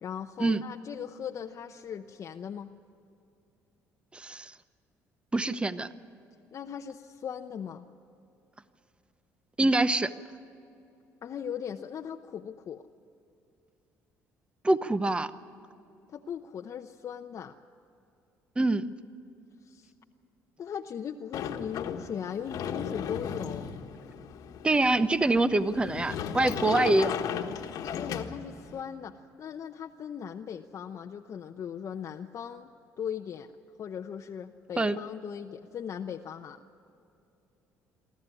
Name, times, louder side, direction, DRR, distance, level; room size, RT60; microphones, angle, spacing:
voice 1, 0.0-2.7 6.5-7.8 11.2-12.8 16.1-17.5 19.6-19.9 20.6-23.7 27.9-32.7 33.0-33.5 33.8-36.6, left 8 dB, 50° left, 4 dB, 0.8 m, -38 dB
voice 2, 4.1-4.5 5.3-5.9 9.6-10.1 14.6-15.3 18.6-18.9 24.6-27.2 34.8-35.0, right 2 dB, 15° right, 13 dB, 0.8 m, -25 dB
Sliding door, 21.3-28.8, left 8 dB, 70° left, 1.5 m, -36 dB
24.5 x 13.5 x 9.9 m, 2.7 s
supercardioid pair, 85°, 7 cm